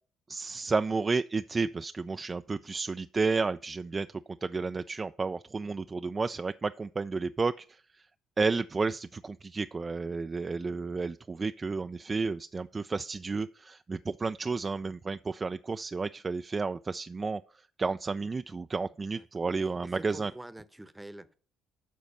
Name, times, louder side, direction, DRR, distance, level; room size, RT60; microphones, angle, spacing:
voice 1, 0.3-4.1 4.4-7.8 8.4-17.4 17.8-20.3, right 4 dB, 30° right, 0.3 m, -31 dB
voice 2, 19.9-21.3, right 1 dB, 10° right, 0.9 m, -46 dB
12.0 x 4.1 x 5.4 m
hypercardioid pair, 50°, 0 cm